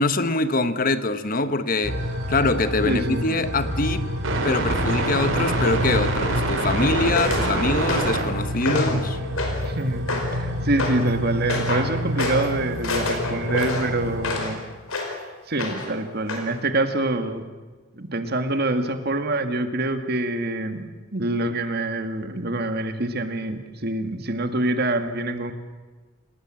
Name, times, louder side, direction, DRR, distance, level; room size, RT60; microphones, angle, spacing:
voice 1, 0.0-2.0 2.3-4.1 4.4-9.2, left 2 dB, 45° left, 11 dB, 1.2 m, -24 dB
sound 1, 1.8-14.5, right 1 dB, 75° right, 4.5 m, -26 dB
voice 2, 2.8-3.4 8.7-9.0 9.6-14.6 15.5-17.5 17.9-20.9 21.1-25.5, right 2 dB, 50° right, 8 dB, 1.9 m, -26 dB
sound 2, 7.1-7.5 7.9-8.2 8.6-9.0 9.4-9.7 10.1-10.4 10.8-11.0 11.5-11.9 12.2-12.5 12.8-14.5 14.9-15.2 15.6-16.0 16.3-16.5, left 2 dB, 90° left, 4.9 m, -27 dB
27.5 x 19.0 x 7.6 m, 1.4 s
head